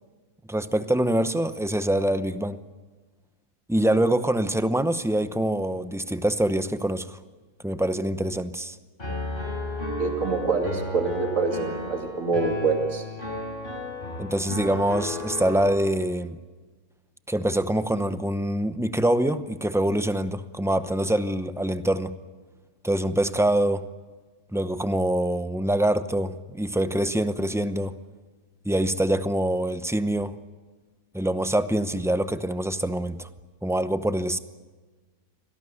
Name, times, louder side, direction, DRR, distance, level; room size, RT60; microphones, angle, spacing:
voice 1, 0.5-2.6 3.7-7.2 7.6-8.8 14.2-16.4 17.3-22.2 22.8-23.8 24.5-28.0 28.6-30.4 31.1-33.3 33.6-34.4, right 1 dB, 5° right, 11 dB, 0.4 m, -25 dB
Piano, 9.0-15.8, left 1 dB, 35° left, 5.4 m, -33 dB
voice 2, 10.0-13.0, right 4 dB, 60° right, 4 dB, 2.9 m, -25 dB
25.5 x 18.0 x 9.2 m, 1.3 s
omnidirectional pair, 1.6 m